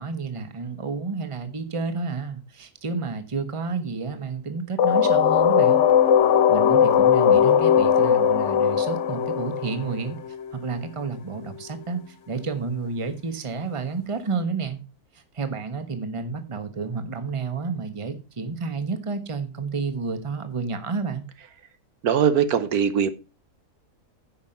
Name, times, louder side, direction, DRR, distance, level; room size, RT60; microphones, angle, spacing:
voice 1, 0.0-5.8 6.5-10.2 10.5-14.8 15.1-21.2, right 4 dB, 20° right, 1.1 m, -30 dB
sound 1, 4.8-10.5, left 8 dB, 55° left, 0.9 m, -19 dB
voice 2, 22.0-23.1, right 8 dB, 70° right, 1.3 m, -21 dB
10.0 x 5.9 x 5.5 m
omnidirectional pair, 1.7 m